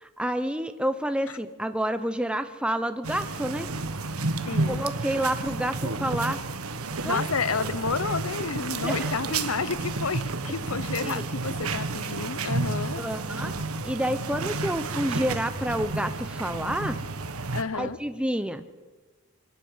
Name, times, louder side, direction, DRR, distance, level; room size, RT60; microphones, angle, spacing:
voice 1, 0.0-3.7 4.7-6.4 7.0-7.2 8.8-9.1 11.0-11.2 13.0-13.5 13.8-17.0 17.7-18.6, right 1 dB, 5° right, 9 dB, 0.8 m, -29 dB
sound 1, 3.0-17.6, right 3 dB, 85° right, 1.4 m, -31 dB
voice 2, 4.5-4.8 7.0-13.1 17.5-18.0, left 5 dB, 75° left, 16 dB, 0.9 m, -30 dB
24.5 x 12.0 x 9.6 m, 1.3 s
head